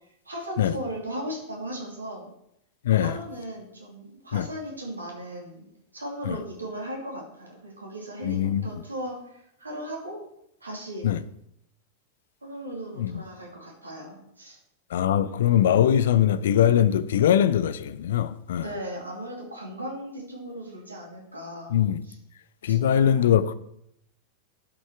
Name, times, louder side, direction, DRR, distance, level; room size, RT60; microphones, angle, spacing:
voice 1, 0.0-2.3 3.0-5.7 5.9-10.2 10.6-11.2 12.4-14.6 18.6-21.7 22.1-22.2 22.7-23.3, right 1 dB, 80° right, 2.6 m, -37 dB
voice 2, 2.8-3.2 4.3-4.5 6.3-6.4 8.2-8.7 11.0-11.2 13.0-13.2 14.9-18.7 21.7-22.0 22.6-23.5, left 10 dB, 60° left, 0.4 m, -22 dB
11.5 x 5.5 x 4.6 m
figure-of-eight pair, 90°, 0 cm